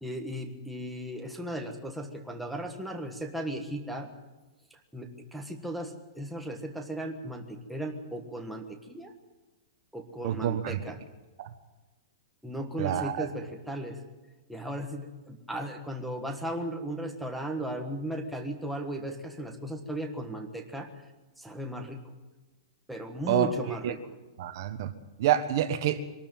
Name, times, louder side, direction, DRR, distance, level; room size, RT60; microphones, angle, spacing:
voice 1, 0.0-4.1 4.9-9.1 9.9-11.0 12.4-14.0 14.5-20.9 21.4-22.0 22.9-24.2, right 1 dB, ahead, 1 dB, 1.4 m, -36 dB
voice 2, 10.2-10.8 11.4-11.5 12.8-13.3 23.3-23.9 24.4-24.9 25.2-26.0, right 10 dB, 40° right, 10 dB, 1.3 m, -27 dB
23.5 x 13.0 x 9.2 m, 1.1 s
hypercardioid pair, 180°, 3 cm